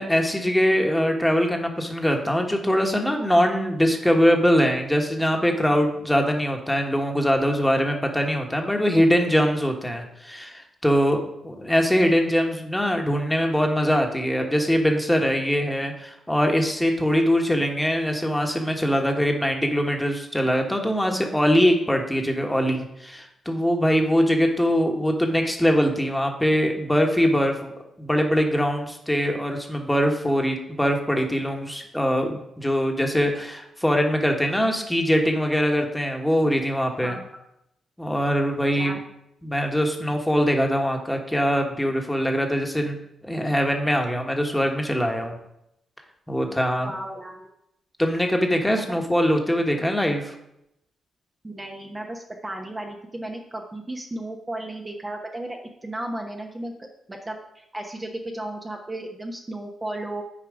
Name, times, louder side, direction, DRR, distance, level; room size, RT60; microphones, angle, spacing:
voice 1, 0.0-11.2 11.4-27.7 28.0-37.2 38.0-39.0 39.4-43.0 43.2-45.4 46.3-46.9 48.0-50.3, equal, 5° left, 3 dB, 1.4 m, -22 dB
voice 2, 37.0-37.4 38.8-39.0 46.9-47.5 48.9-49.0 51.4-56.7 57.1-60.2, right 1 dB, 25° right, 1 dB, 1.0 m, -34 dB
7.5 x 4.6 x 4.9 m, 0.81 s
supercardioid pair, 55°, 0 cm